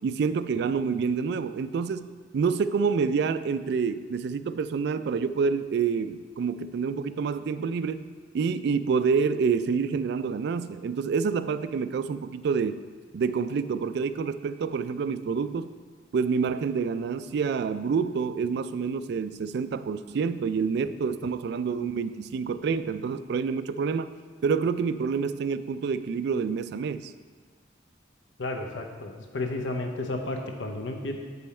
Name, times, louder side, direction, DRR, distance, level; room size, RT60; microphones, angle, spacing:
voice 1, 0.0-8.1 8.3-12.8 13.1-15.7 16.1-24.1 24.4-27.1, right 5 dB, 60° right, 13 dB, 0.3 m, -27 dB
voice 2, 28.4-31.1, left 2 dB, 80° left, 3 dB, 0.8 m, -32 dB
8.1 x 5.4 x 4.3 m, 1.5 s
head